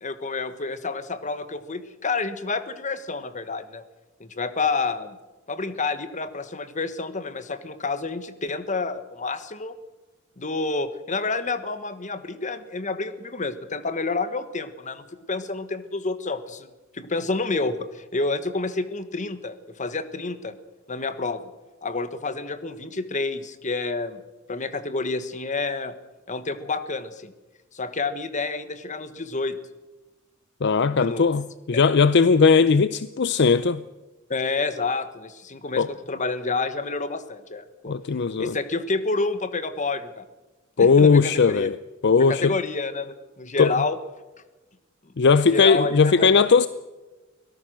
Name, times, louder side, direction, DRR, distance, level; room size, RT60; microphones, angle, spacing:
voice 1, 0.0-3.8 4.2-5.2 5.5-9.7 10.4-16.7 16.9-20.5 20.9-21.4 21.8-24.2 24.5-25.9 26.3-27.3 27.7-29.6 30.9-31.3 31.7-31.8 34.3-38.0 38.4-40.3 40.8-41.7 42.2-44.0 45.3-46.6, left 3 dB, 40° left, 1.4 m, -29 dB
voice 2, 30.6-33.8 35.8-35.9 37.9-38.5 40.8-41.8 42.0-42.5 43.6-43.7 45.2-46.7, left 5 dB, 60° left, 0.6 m, -18 dB
23.5 x 17.5 x 6.3 m
head